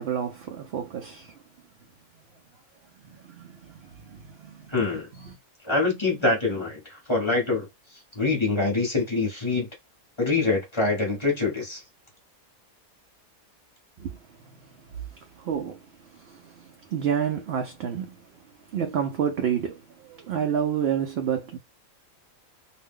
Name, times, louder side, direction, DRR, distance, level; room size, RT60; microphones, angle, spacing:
voice 1, 0.0-1.3 3.1-4.7 5.1-5.4 14.0-14.8 15.1-18.2 18.7-21.6, right 8 dB, 65° right, 0.6 m, -30 dB
voice 2, 4.7-5.1 5.6-7.7 8.2-9.7 10.2-11.8, left 3 dB, 20° left, 1.0 m, -25 dB
2.6 x 2.1 x 3.6 m
omnidirectional pair, 1.5 m